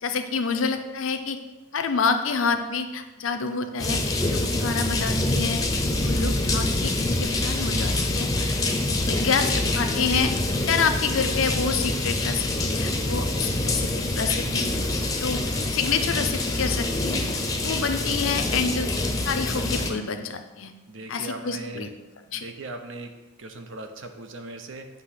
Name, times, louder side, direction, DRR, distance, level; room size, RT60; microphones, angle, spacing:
voice 1, 0.0-1.4 1.7-4.0 4.3-5.6 6.0-8.6 9.1-10.3 10.7-14.7 15.2-15.4 15.7-18.9 19.2-20.7 21.1-21.9 22.3-22.4, left 5 dB, 75° left, 7 dB, 0.6 m, -28 dB
sound 1, 3.8-19.9, left 2 dB, 15° left, 0.6 m, -26 dB
voice 2, 20.9-21.9 22.3-23.1 23.4-24.9, right 2 dB, 65° right, 6 dB, 0.7 m, -38 dB
8.2 x 2.9 x 5.7 m, 1.1 s
head